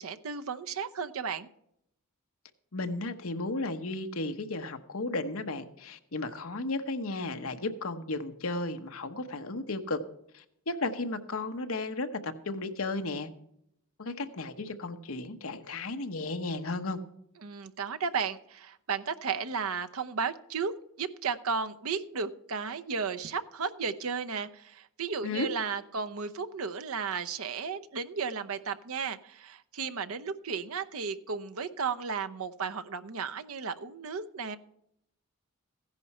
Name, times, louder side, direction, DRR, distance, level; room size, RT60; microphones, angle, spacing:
voice 1, 0.0-1.5 17.4-20.7 21.0-34.6, right 5 dB, 75° right, 10 dB, 0.8 m, -34 dB
voice 2, 2.7-10.0 10.3-13.3 14.0-17.0 25.2-25.5, left 2 dB, 70° left, 7 dB, 1.1 m, -34 dB
15.5 x 10.5 x 4.3 m, 0.75 s
head